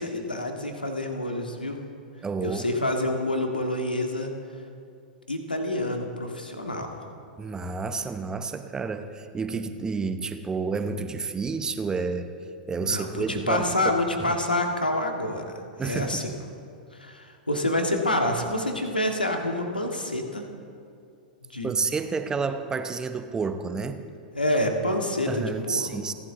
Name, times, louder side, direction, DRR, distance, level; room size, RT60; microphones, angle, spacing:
voice 1, 0.0-1.8 2.4-4.3 5.3-7.1 12.8-15.5 15.8-16.2 16.9-20.5 21.5-21.7 24.3-25.9, left 1 dB, 85° left, 3 dB, 1.8 m, -27 dB
voice 2, 2.2-2.6 7.4-12.3 12.7-13.6 14.2-14.3 15.8-16.3 21.6-24.0 25.3-26.1, right 4 dB, 15° right, 9 dB, 0.9 m, -30 dB
30.0 x 11.5 x 3.9 m, 2.5 s
figure-of-eight pair, 100°, 5 cm